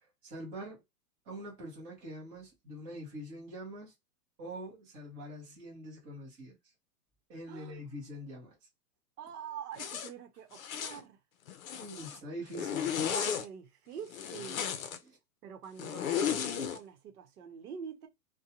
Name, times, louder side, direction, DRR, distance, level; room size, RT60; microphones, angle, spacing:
voice 1, 0.2-0.8 1.2-3.9 4.4-6.6 7.3-8.5 11.8-13.0 15.0-15.2, equal, 15° right, 0.8 m, -44 dB
voice 2, 7.5-7.8 9.2-11.2 13.0-14.8 15.4-18.1, right 8 dB, 65° right, 0.9 m, -45 dB
Zipper (clothing), 9.8-10.1 10.5-11.0 11.5-12.2 12.5-13.4 14.1-15.0 15.8-16.8, left 8 dB, 55° left, 0.6 m, -34 dB
2.5 x 2.2 x 2.8 m
hypercardioid pair, 170°, 49 cm